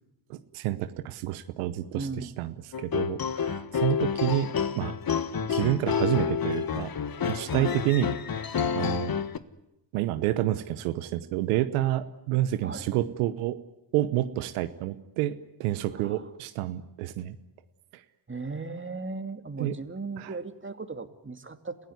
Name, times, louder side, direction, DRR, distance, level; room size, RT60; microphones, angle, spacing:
voice 1, 0.3-2.1 2.4-5.0 5.4-6.9 7.3-8.1 8.7-9.2 9.9-13.6 13.9-17.4 19.6-19.8 20.2-20.3, right 14 dB, 90° right, 11 dB, 1.0 m, -29 dB
voice 2, 1.9-2.4 7.5-7.7 12.6-12.9 15.9-16.3 18.3-21.8, right 3 dB, 25° right, 7 dB, 2.6 m, -37 dB
sound 1, 2.7-9.4, left 7 dB, 45° left, 1.6 m, -29 dB
28.5 x 16.0 x 9.6 m, 0.88 s
hypercardioid pair, 45°, 48 cm